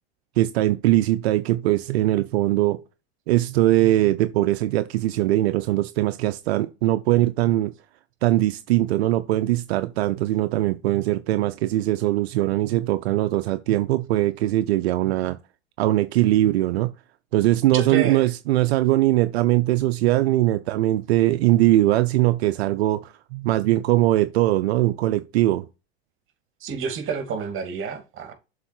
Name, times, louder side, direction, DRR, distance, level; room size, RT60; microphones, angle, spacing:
voice 1, 0.4-2.8 3.3-7.7 8.2-15.4 15.8-16.9 17.3-25.7, right 15 dB, 80° right, 0.6 m, -21 dB
voice 2, 17.7-18.3 26.6-28.3, right 6 dB, 40° right, 2.7 m, -29 dB
7.0 x 4.2 x 4.4 m
hypercardioid pair, 100°, 32 cm